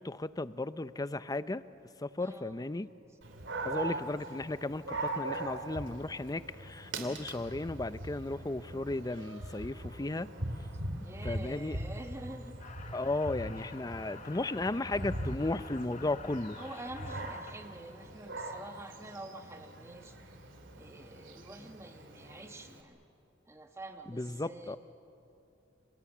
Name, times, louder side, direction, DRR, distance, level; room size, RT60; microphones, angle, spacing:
voice 1, 0.0-1.6 2.0-2.9 3.6-10.3 11.2-11.8 12.9-16.6 24.1-24.8, left 2 dB, 20° left, 14 dB, 0.6 m, -35 dB
voice 2, 2.2-2.7 3.6-4.0 11.0-12.6 16.6-20.2 20.7-23.0 23.5-24.8, right 1 dB, 15° right, 5 dB, 1.2 m, -47 dB
Dog, 3.2-22.8, right 2 dB, 70° right, 2.9 m, -41 dB
sound 1, 12.6-17.5, left 5 dB, 40° left, 1.2 m, -49 dB
29.5 x 26.5 x 7.3 m, 2.8 s
head